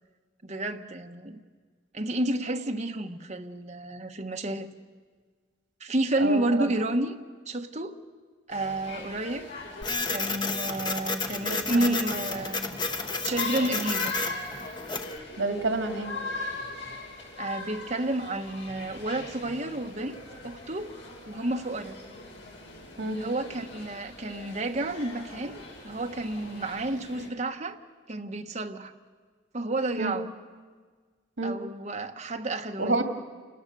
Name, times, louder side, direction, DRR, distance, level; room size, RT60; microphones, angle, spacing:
voice 1, 0.4-1.4 1.9-4.7 5.8-7.1 7.5-8.0 8.5-9.5 10.1-12.7 13.2-14.2 17.4-20.2 20.4-21.0 21.3-22.0 23.2-27.8 28.1-28.9 29.5-30.3 31.4-33.0, right 2 dB, 35° right, 1.2 m, -30 dB
voice 2, 6.2-6.7 11.5-11.9 15.4-16.1 23.0-23.2 30.0-30.1 31.4-31.5 32.8-33.0, right 2 dB, 80° right, 2.3 m, -28 dB
sound 1, 8.5-27.3, left 3 dB, 70° left, 6.4 m, -41 dB
Printer, 9.8-15.2, left 3 dB, 20° left, 1.0 m, -31 dB
29.0 x 19.0 x 6.8 m
head